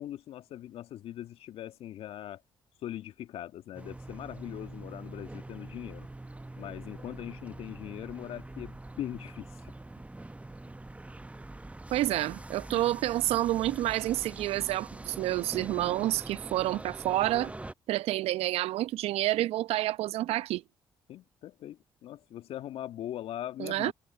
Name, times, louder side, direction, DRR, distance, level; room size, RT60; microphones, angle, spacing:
voice 1, 0.0-2.4 2.8-6.1 6.6-9.7 21.1-23.9, left 12 dB, 65° left, 2.1 m, -41 dB
sound 1, 3.7-17.7, right 2 dB, 10° right, 0.8 m, -44 dB
voice 2, 11.9-17.5 17.9-20.6 23.6-23.9, right 15 dB, 70° right, 0.9 m, -29 dB
hypercardioid pair, 45°, 11 cm